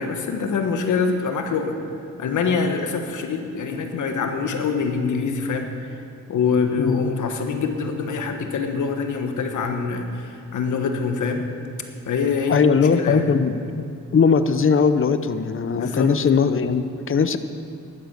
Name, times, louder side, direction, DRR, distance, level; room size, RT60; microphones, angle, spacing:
voice 1, 0.0-1.8 2.2-6.0 6.3-11.4 12.0-13.3 15.7-16.1, left 5 dB, 90° left, 5 dB, 1.4 m, -25 dB
voice 2, 6.8-7.2 12.5-17.4, left 5 dB, 45° left, 11 dB, 0.8 m, -20 dB
12.0 x 9.6 x 8.1 m, 2.5 s
cardioid pair, 70°, 29 cm